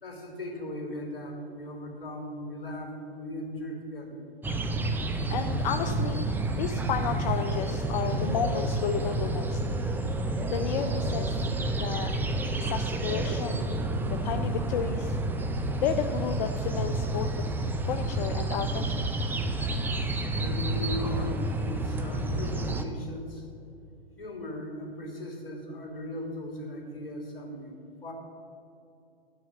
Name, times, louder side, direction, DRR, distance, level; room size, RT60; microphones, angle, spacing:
voice 1, 0.0-4.2 20.4-23.4 24.2-27.7 28.0-28.1, left 1 dB, 70° left, 0 dB, 3.2 m, -38 dB
sound 1, 4.4-22.8, right 2 dB, 5° right, 0.6 m, -29 dB
voice 2, 5.3-9.6 10.5-11.5 11.8-12.1 12.6-13.7 14.2-15.2 15.8-17.3 17.9-19.0, left 8 dB, 45° left, 6 dB, 0.7 m, -32 dB
12.0 x 6.3 x 7.5 m, 2.7 s
hypercardioid pair, 115°, 30 cm